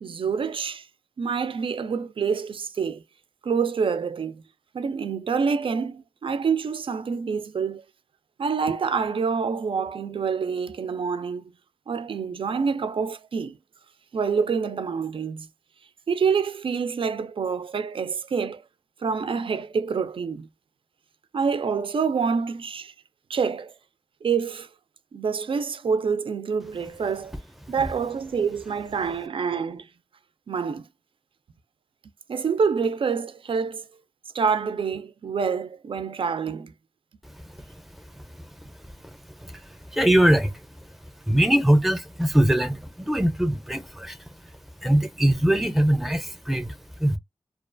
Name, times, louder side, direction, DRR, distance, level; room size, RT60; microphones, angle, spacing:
voice 1, 0.0-0.9 1.2-3.0 3.4-4.4 4.7-7.8 8.4-11.5 11.9-13.6 14.1-15.5 16.1-18.6 19.0-20.5 21.3-22.9 23.3-23.7 24.2-24.7 25.1-27.4 27.7-29.9 30.5-30.9 32.3-33.9 34.3-36.7, right 5 dB, 60° right, 0.4 m, -27 dB
voice 2, 38.1-40.9 41.3-44.2 44.8-47.2, right 1 dB, ahead, 0.5 m, -23 dB
2.4 x 2.3 x 2.5 m
wide cardioid pair, 85°, 10 cm